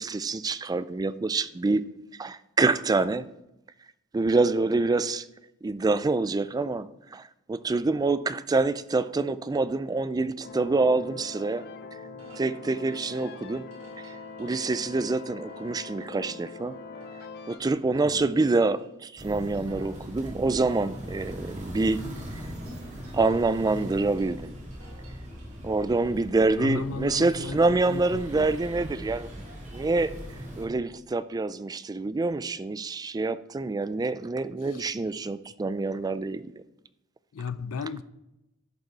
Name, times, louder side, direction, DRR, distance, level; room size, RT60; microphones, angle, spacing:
voice 1, 0.0-1.8 2.2-3.3 4.1-5.2 5.6-11.6 12.3-13.7 14.0-16.8 17.5-22.1 23.1-24.5 25.6-29.3 29.7-30.1 30.6-36.5, right 3 dB, 20° right, 0.3 m, -26 dB
sound 1, 10.4-17.6, left 4 dB, 50° left, 0.8 m, -43 dB
sound 2, 12.2-27.2, right 2 dB, 80° right, 2.7 m, -57 dB
sound 3, 19.2-30.7, equal, 35° right, 2.2 m, -40 dB
voice 2, 26.6-28.5 34.7-35.0 37.3-38.0, left 5 dB, 75° left, 0.4 m, -35 dB
11.0 x 5.3 x 4.6 m
head